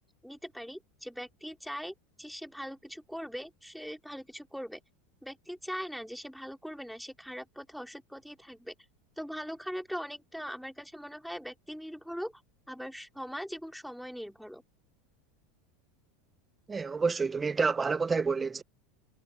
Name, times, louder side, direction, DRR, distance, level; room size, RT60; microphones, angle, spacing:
voice 1, 0.2-4.8 5.2-8.7 9.2-12.3 12.7-14.6, equal, ahead, 3.2 m, -41 dB
voice 2, 16.7-18.6, right 4 dB, 20° right, 1.1 m, -28 dB
supercardioid pair, 110°, 0 cm